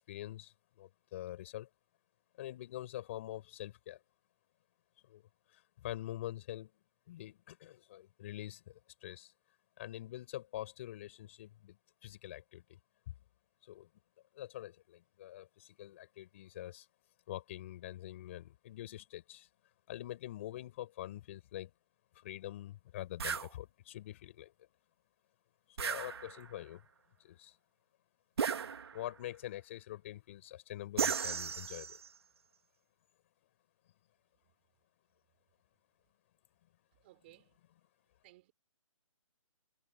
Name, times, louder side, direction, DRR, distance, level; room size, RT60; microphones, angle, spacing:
voice 1, 0.0-1.7 2.4-4.0 5.0-5.2 5.5-6.7 7.1-9.3 9.8-11.8 12.0-12.8 13.1-13.2 13.6-13.9 14.3-16.9 17.3-19.5 19.9-21.7 22.1-24.5 25.7-26.8 27.2-27.6 28.9-32.0, left 14 dB, 20° left, 6.1 m, -45 dB
sound 1, 23.2-23.5 25.8-26.6 28.4-29.2 31.0-32.1, right 6 dB, 45° right, 2.4 m, -36 dB
voice 2, 37.0-37.5 38.2-38.5, right 18 dB, 20° right, 4.9 m, -60 dB
hypercardioid pair, 175°, 18 cm